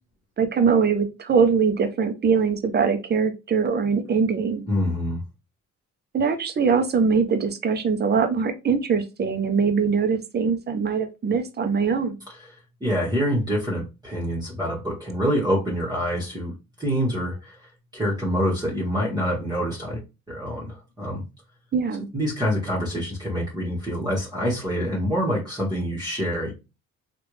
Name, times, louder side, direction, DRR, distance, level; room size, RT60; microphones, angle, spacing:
voice 1, 0.4-4.6 6.1-12.2 21.7-22.1, right 5 dB, 35° right, 8 dB, 0.6 m, -22 dB
voice 2, 4.7-5.2 12.8-17.6 17.9-20.0 20.3-21.2 22.1-26.5, equal, 15° right, -5 dB, 1.3 m, -26 dB
3.3 x 2.5 x 3.1 m, 0.27 s
cardioid pair, 90°, 30 cm